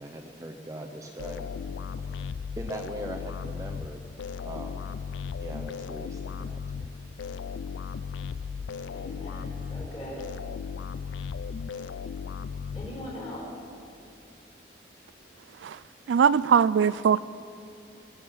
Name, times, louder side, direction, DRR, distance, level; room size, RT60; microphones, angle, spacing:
voice 1, 0.0-1.5 2.0-2.2 2.6-4.1 4.4-4.9 5.3-6.9, right 1 dB, 15° right, 3 dB, 0.6 m, -41 dB
sound 1, 1.2-13.4, left 6 dB, 85° left, 0.3 m, -36 dB
voice 2, 8.9-10.3 12.7-13.5, equal, 30° left, -3 dB, 4.3 m, -40 dB
voice 3, 16.1-17.2, right 7 dB, 80° right, 18 dB, 0.3 m, -21 dB
21.5 x 7.3 x 7.1 m, 2.5 s
head